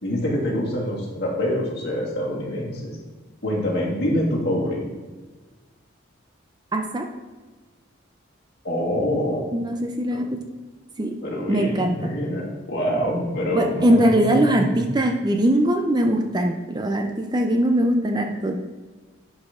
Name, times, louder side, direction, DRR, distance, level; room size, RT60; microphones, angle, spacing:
voice 1, 0.0-3.0 3.4-4.8 8.6-9.5 10.1-10.3 11.2-14.6, equal, 55° left, -5 dB, 2.3 m, -25 dB
voice 2, 6.7-7.1 9.5-10.5 11.0-11.2 11.5-12.1 13.5-18.6, right 1 dB, 20° right, 4 dB, 0.5 m, -21 dB
11.0 x 4.1 x 3.7 m, 1.3 s
head